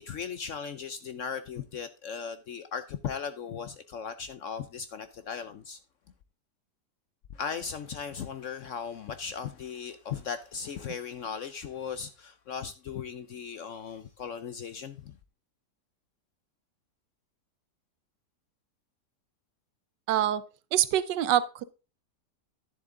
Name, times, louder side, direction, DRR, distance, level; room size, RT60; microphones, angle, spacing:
voice 1, 0.0-5.8 7.3-15.2, left 7 dB, 65° left, 0.8 m, -37 dB
voice 2, 20.1-20.4 20.7-21.6, right 11 dB, 85° right, 1.3 m, -25 dB
10.5 x 7.1 x 3.7 m
omnidirectional pair, 1.9 m